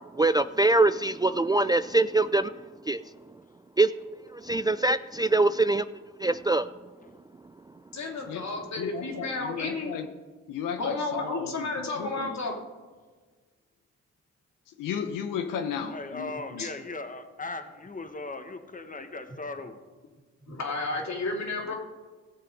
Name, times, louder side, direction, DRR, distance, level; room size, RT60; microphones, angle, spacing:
voice 1, 0.2-2.5 2.9-3.0 3.8-3.9 4.4-5.9 6.2-6.7, right 2 dB, 15° right, 13 dB, 0.3 m, -23 dB
voice 2, 7.9-9.9 10.8-12.5 16.6-16.7 20.4-21.7, left 3 dB, 60° left, 1 dB, 2.9 m, -32 dB
voice 3, 8.8-10.1 10.5-12.4 14.7-16.7, left 7 dB, 90° left, 6 dB, 0.9 m, -35 dB
voice 4, 15.9-19.8 21.6-21.7, left 3 dB, 25° left, 7 dB, 1.5 m, -38 dB
17.0 x 6.7 x 5.2 m, 1.4 s
supercardioid pair, 50°, 31 cm